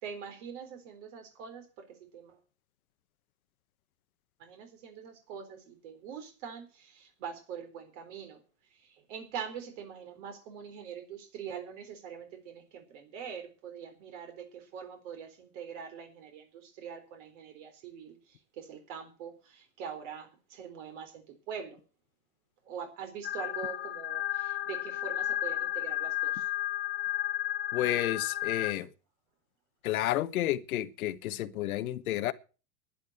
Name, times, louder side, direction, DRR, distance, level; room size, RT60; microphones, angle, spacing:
voice 1, 0.0-2.4 4.4-8.4 8.7-21.8 22.6-26.5, right 7 dB, 55° right, 4.1 m, -43 dB
sound 1, 23.2-28.7, left 13 dB, 25° left, 2.0 m, -33 dB
voice 2, 27.7-28.9 29.8-32.3, left 14 dB, 75° left, 1.2 m, -31 dB
11.0 x 10.0 x 8.0 m
supercardioid pair, 145°, 42 cm